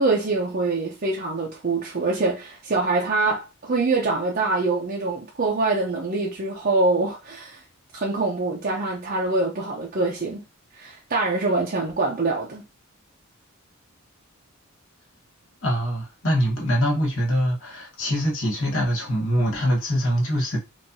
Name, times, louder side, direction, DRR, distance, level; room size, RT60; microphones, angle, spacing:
voice 1, 0.0-7.6 7.9-10.4 10.8-12.6, right 3 dB, 40° right, 0.6 m, -24 dB
voice 2, 15.6-20.6, equal, 65° left, 1.3 m, -23 dB
4.6 x 2.6 x 2.7 m
head